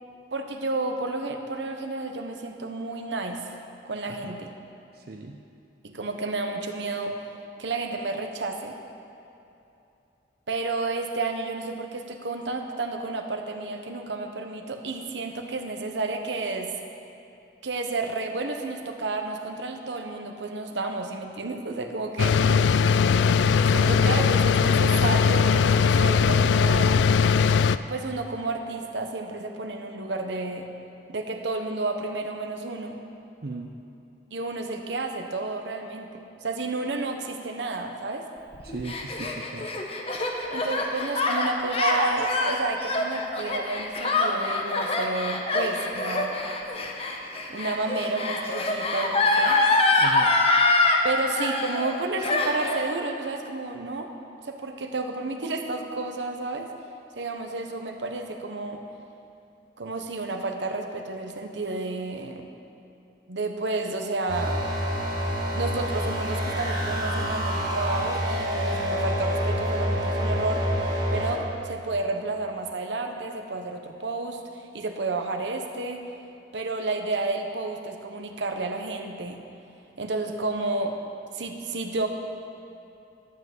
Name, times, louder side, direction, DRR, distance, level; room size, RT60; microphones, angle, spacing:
voice 1, 0.3-3.4 3.8-4.5 5.8-7.2 7.6-8.7 10.5-16.7 17.6-22.4 23.7-27.0 27.9-30.7 31.1-33.0 34.3-38.3 40.5-46.4 47.5-49.6 51.0-54.1 54.4-56.7 57.2-58.8 59.8-62.5 63.3-64.6 65.5-70.6 71.1-74.4 74.7-76.0 76.5-79.4 80.0-80.9 81.3-82.1, right 3 dB, 80° right, 4 dB, 1.0 m, -31 dB
voice 2, 4.9-5.4 22.4-23.0 33.4-33.7 38.6-39.7 50.0-50.4, right 3 dB, 55° right, 1 dB, 0.6 m, -37 dB
sound 1, 22.2-27.8, left 6 dB, 85° left, 0.3 m, -20 dB
Gasp, 38.5-51.0 51.4-52.0 52.2-52.9, left 2 dB, 35° left, 0.9 m, -25 dB
sound 2, 64.3-71.3, equal, 25° right, 1.9 m, -27 dB
12.0 x 5.8 x 7.6 m, 2.8 s
head